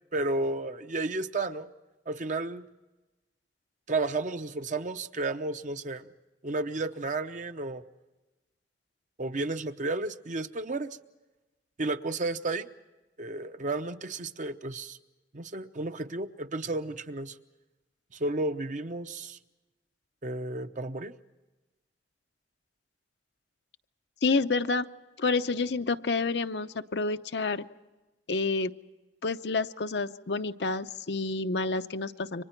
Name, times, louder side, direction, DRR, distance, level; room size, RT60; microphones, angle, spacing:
voice 1, 0.1-1.7 2.1-2.7 3.9-6.1 6.4-7.8 9.2-11.0 11.8-12.7 13.2-15.0 15.3-17.4 18.1-19.4 20.2-21.1, right 2 dB, 45° right, 9 dB, 0.9 m, -32 dB
voice 2, 24.2-24.9 25.2-27.6 28.3-28.7 29.2-32.4, left 3 dB, 75° left, 9 dB, 0.8 m, -29 dB
29.5 x 24.5 x 4.6 m, 1.1 s
head